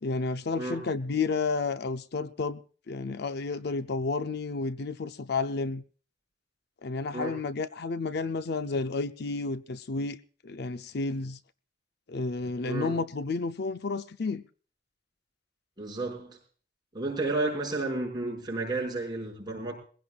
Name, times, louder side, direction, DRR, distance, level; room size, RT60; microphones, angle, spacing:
voice 1, 0.0-2.6 2.9-5.8 6.8-10.2 10.4-11.4 12.1-14.4, left 3 dB, 60° left, 0.6 m, -31 dB
voice 2, 12.7-13.0 15.8-16.4 16.9-19.7, right 2 dB, 20° right, 5.6 m, -32 dB
21.5 x 16.5 x 2.4 m
head